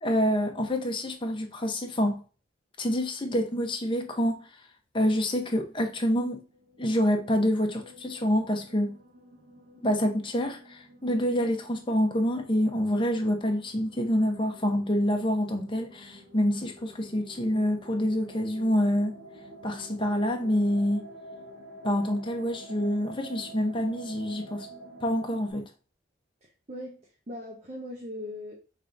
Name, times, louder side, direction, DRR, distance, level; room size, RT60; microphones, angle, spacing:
voice 1, 0.0-2.2 2.8-4.4 4.9-6.4 6.8-9.0 9.8-19.2 19.6-21.1 21.8-24.7 25.0-25.7, equal, 25° left, 0.7 m, -27 dB
sound 1, 6.4-25.5, right 1 dB, 85° right, 1.8 m, -49 dB
voice 2, 26.4-28.5, left 1 dB, 35° right, 0.7 m, -40 dB
5.4 x 3.3 x 2.6 m
head